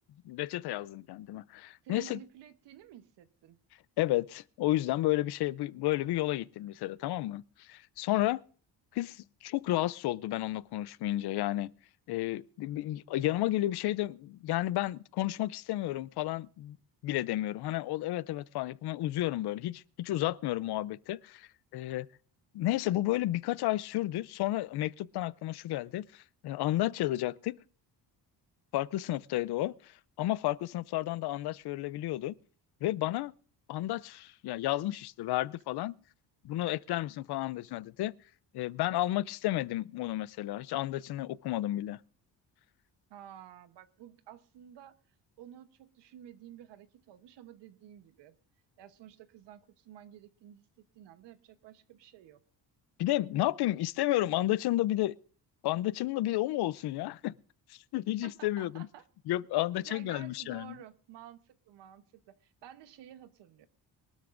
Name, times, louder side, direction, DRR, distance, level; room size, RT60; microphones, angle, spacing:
voice 1, 0.2-2.2 4.0-8.4 8.9-11.7 12.1-16.8 17.0-22.1 22.5-27.6 28.7-32.3 32.8-33.3 33.7-36.0 36.4-38.1 38.5-42.0 53.0-55.1 55.6-57.3 57.7-58.9 59.3-60.8, left 15 dB, 70° left, 0.5 m, -32 dB
voice 2, 1.8-3.6 43.1-45.0 45.4-48.4 48.8-52.4 58.2-59.1 59.9-63.7, right 11 dB, 85° right, 1.1 m, -52 dB
23.0 x 13.0 x 2.5 m
cardioid pair, 145°, 41 cm